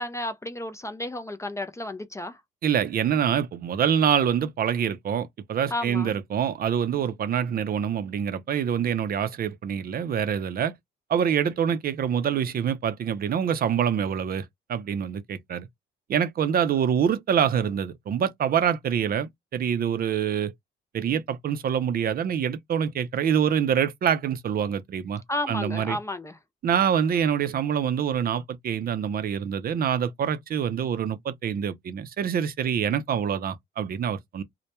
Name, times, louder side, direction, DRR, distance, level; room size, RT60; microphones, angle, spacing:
voice 1, 0.0-2.4 5.7-6.1 25.3-26.4, left 1 dB, 15° left, 0.4 m, -32 dB
voice 2, 2.6-10.7 11.1-15.7 16.1-20.5 20.9-25.2 25.5-26.0 26.6-34.4, right 8 dB, 50° right, 0.4 m, -25 dB
2.1 x 2.1 x 2.8 m
cardioid pair, 90°, 20 cm